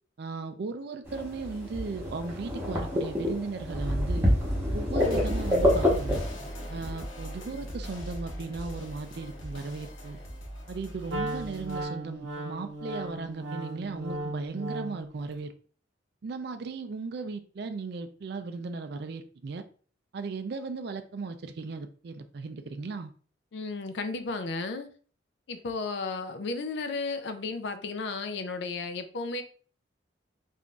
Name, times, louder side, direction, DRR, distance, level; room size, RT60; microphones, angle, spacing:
voice 1, 0.2-4.3 4.7-6.2 6.7-10.2 10.7-15.5 16.2-19.6 20.1-23.1, right 4 dB, 55° right, 0.4 m, -37 dB
sound 1, 1.1-6.3, left 1 dB, 15° right, 0.9 m, -27 dB
sound 2, 5.0-11.8, equal, 85° left, 1.0 m, -40 dB
Wind instrument woodwind instrument, 11.1-15.1, right 1 dB, 70° right, 0.7 m, -36 dB
voice 2, 23.5-24.9 25.5-29.4, left 3 dB, 60° left, 0.4 m, -33 dB
3.7 x 2.5 x 2.3 m
head